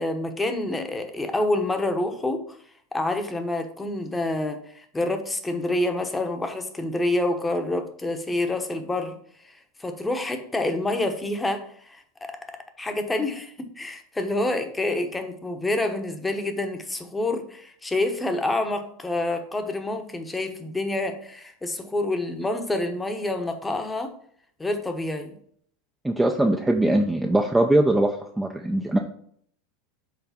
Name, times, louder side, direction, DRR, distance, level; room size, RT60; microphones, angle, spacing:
voice 1, 0.0-2.6 2.9-9.2 9.8-24.1 24.6-25.4, left 2 dB, 10° left, 7 dB, 1.0 m, -27 dB
voice 2, 26.0-29.0, right 1 dB, 5° right, 3 dB, 0.5 m, -21 dB
5.8 x 3.8 x 5.7 m, 0.63 s
supercardioid pair, 125°, 0 cm